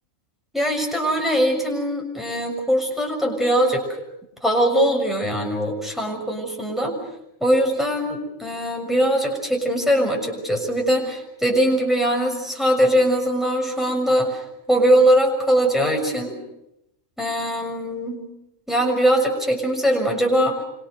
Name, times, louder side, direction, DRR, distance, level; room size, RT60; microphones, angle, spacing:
voice 1, 0.5-3.8 4.4-7.0 7.4-14.4 14.7-16.4 17.2-18.2 18.7-20.6, equal, ahead, 1 dB, 6.6 m, -21 dB
28.5 x 26.5 x 6.6 m, 0.81 s
omnidirectional pair, 1.3 m